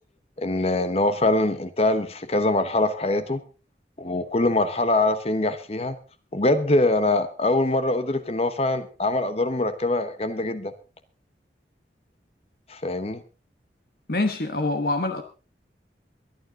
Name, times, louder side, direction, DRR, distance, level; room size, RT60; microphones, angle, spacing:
voice 1, 0.4-3.4 4.0-5.9 6.3-10.7 12.7-13.2, left 2 dB, 35° left, 11 dB, 1.0 m, -23 dB
voice 2, 14.1-15.2, left 2 dB, 55° left, 7 dB, 1.2 m, -25 dB
23.0 x 9.4 x 3.8 m, 0.33 s
head